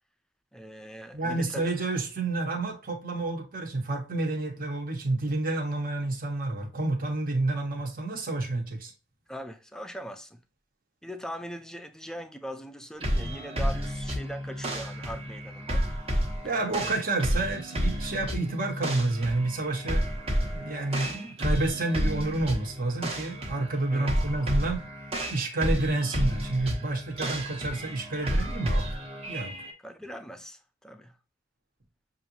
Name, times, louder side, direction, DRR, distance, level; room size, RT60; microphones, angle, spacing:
voice 1, 0.5-1.7 9.3-10.4 11.0-15.9 16.8-17.0 23.9-24.1 29.8-31.2, equal, 5° left, 0.6 m, -41 dB
voice 2, 1.1-8.9 16.4-20.1 20.5-24.9 25.3-28.9 29.3-29.5, right 2 dB, 45° right, 1.3 m, -29 dB
sound 1, 13.0-29.7, equal, 30° right, 1.1 m, -31 dB
6.8 x 2.7 x 2.9 m
head